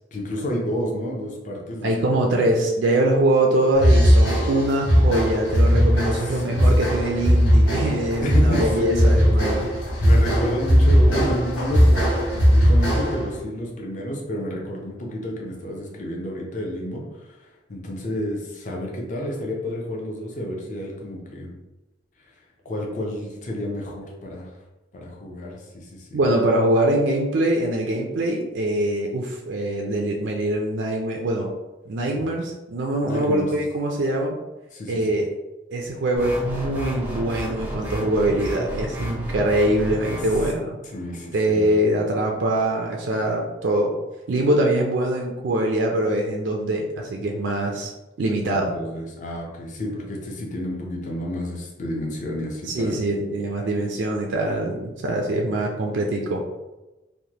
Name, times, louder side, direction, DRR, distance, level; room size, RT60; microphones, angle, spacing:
voice 1, 0.1-2.2 6.1-6.6 8.2-9.6 10.0-21.5 22.3-22.4 22.6-24.5 24.9-26.2 32.1-32.3 33.0-33.5 34.7-35.2 40.8-41.7 48.6-53.0, equal, 45° left, -1 dB, 0.5 m, -30 dB
voice 2, 1.8-9.7 26.1-31.5 31.9-34.4 34.9-35.3 35.7-40.8 41.3-43.9 44.3-47.9 48.2-48.7 52.7-56.4, right 1 dB, 80° right, 1 dB, 0.4 m, -23 dB
sound 1, 3.8-13.3, equal, 80° left, 1.4 m, -18 dB
sound 2, 36.2-40.5, equal, 10° right, 0.4 m, -32 dB
3.1 x 2.1 x 2.8 m, 1.0 s
head